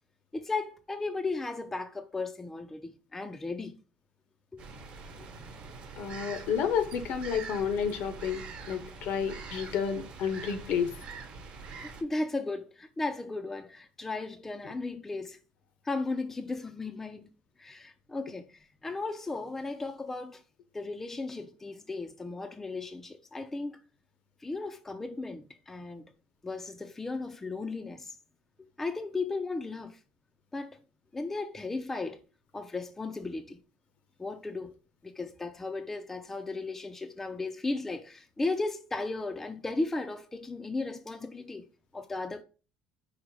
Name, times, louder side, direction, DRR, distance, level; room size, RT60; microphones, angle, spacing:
voice 1, 0.3-3.8 4.5-4.6 11.8-15.4 15.8-17.3 17.6-20.4 20.7-23.8 24.4-26.1 26.4-28.2 28.8-30.0 30.5-30.8 31.1-32.2 32.5-33.6 34.2-34.7 35.0-41.6 41.9-42.4, left 3 dB, 10° left, 0.4 m, -35 dB
sound 1, 4.6-12.0, right 4 dB, 50° right, 1.0 m, -44 dB
voice 2, 6.0-10.9, left 7 dB, 60° left, 0.6 m, -31 dB
4.9 x 2.0 x 4.5 m
cardioid pair, 135°, 3 cm